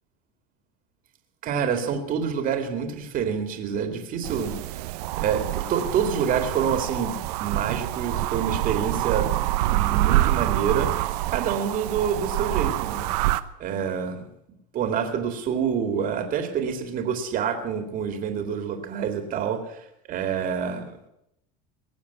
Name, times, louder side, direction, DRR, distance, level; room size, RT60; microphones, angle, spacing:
voice 1, 1.4-4.6 5.1-9.3 9.6-13.1 13.6-14.2 14.7-20.8, right 7 dB, 45° right, 6 dB, 2.2 m, -27 dB
sound 1, 4.2-13.4, right 16 dB, 85° right, 0.8 m, -26 dB
19.0 x 7.2 x 9.4 m, 0.82 s
supercardioid pair, 120°, 20 cm